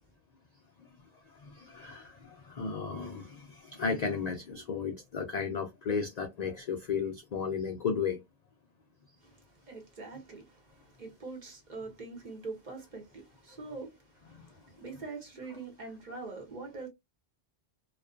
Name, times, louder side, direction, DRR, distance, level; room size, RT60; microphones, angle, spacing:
voice 1, 1.4-8.2, left 5 dB, 60° left, 0.4 m, -34 dB
voice 2, 9.2-16.9, right 3 dB, 45° right, 0.8 m, -44 dB
2.4 x 2.2 x 2.4 m
omnidirectional pair, 1.2 m